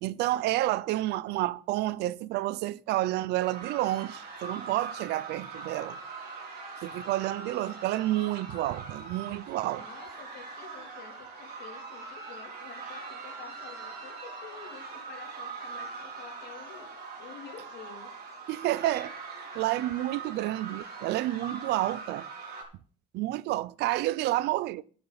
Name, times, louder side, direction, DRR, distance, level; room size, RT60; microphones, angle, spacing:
voice 1, 0.0-6.0 6.8-9.9 18.5-19.1 19.5-22.3 23.1-24.8, right 16 dB, 85° right, 0.5 m, -30 dB
sound 1, 3.4-22.6, right 4 dB, 65° right, 4.8 m, -42 dB
voice 2, 9.8-18.1, left 7 dB, 70° left, 3.3 m, -49 dB
12.0 x 9.3 x 4.0 m
cardioid pair, 110°, 17 cm